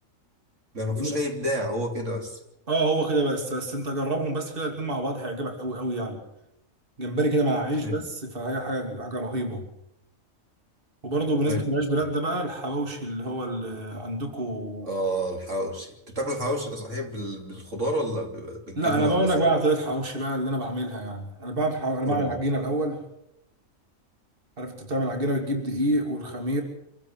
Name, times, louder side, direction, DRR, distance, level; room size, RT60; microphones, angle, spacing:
voice 1, 0.7-2.4 7.8-8.0 11.5-11.7 14.8-19.5 22.1-22.3, equal, 60° right, 2 dB, 3.5 m, -30 dB
voice 2, 2.7-6.2 7.0-9.6 11.0-14.9 18.7-23.1 24.6-26.6, right 1 dB, 40° right, 3 dB, 3.1 m, -27 dB
26.5 x 15.0 x 7.7 m, 0.82 s
omnidirectional pair, 1.4 m